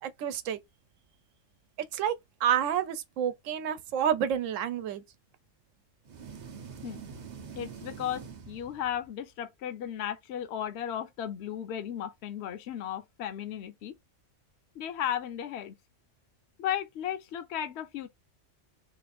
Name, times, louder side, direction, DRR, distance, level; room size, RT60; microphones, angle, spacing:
voice 1, 0.0-0.6 1.9-2.2 2.4-5.0, right 9 dB, 85° right, 1.0 m, -29 dB
sound 1, 6.0-9.2, right 6 dB, 50° right, 0.5 m, -45 dB
voice 2, 7.6-14.0 14.8-15.7 16.6-18.1, left 10 dB, 65° left, 0.9 m, -35 dB
3.0 x 2.5 x 4.1 m
omnidirectional pair, 1.3 m